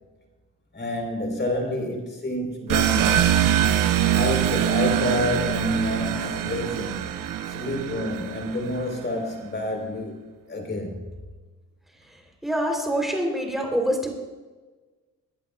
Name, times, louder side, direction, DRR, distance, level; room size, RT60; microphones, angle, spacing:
voice 1, 0.7-3.2 4.1-7.1 7.5-10.2 10.5-11.0, left 1 dB, 35° left, 2 dB, 4.3 m, -28 dB
sound 1, 2.7-9.0, right 10 dB, 80° right, 0.9 m, -23 dB
voice 2, 12.4-14.1, equal, ahead, 1 dB, 3.7 m, -25 dB
23.0 x 11.0 x 2.5 m, 1.3 s
cardioid pair, 90°, 32 cm